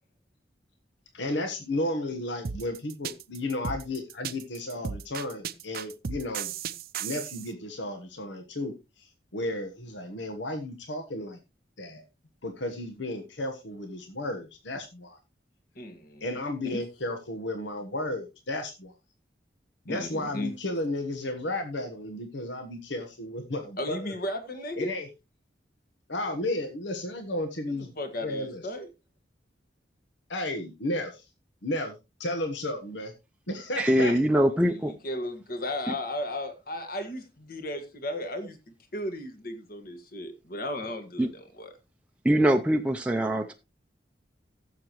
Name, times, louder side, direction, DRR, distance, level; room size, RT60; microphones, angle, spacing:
voice 1, 1.1-6.5 7.0-9.1 9.3-11.4 11.8-12.0 12.4-15.2 16.2-18.9 19.8-24.0 24.8-25.1 26.1-27.9 28.2-28.6 30.3-31.2 31.6-31.9 32.2-33.1 33.5-34.1, left 1 dB, 85° left, 1.3 m, -33 dB
sound 1, 2.4-7.5, right 7 dB, 55° right, 0.6 m, -35 dB
voice 2, 15.8-16.4 16.6-16.8 19.9-20.5 23.8-24.9 27.7-28.9 35.0-41.7, left 1 dB, 55° left, 1.8 m, -35 dB
voice 3, 33.8-34.9 35.9-36.0 41.2-41.3 42.2-43.5, equal, 5° right, 0.5 m, -23 dB
15.0 x 7.2 x 3.1 m
head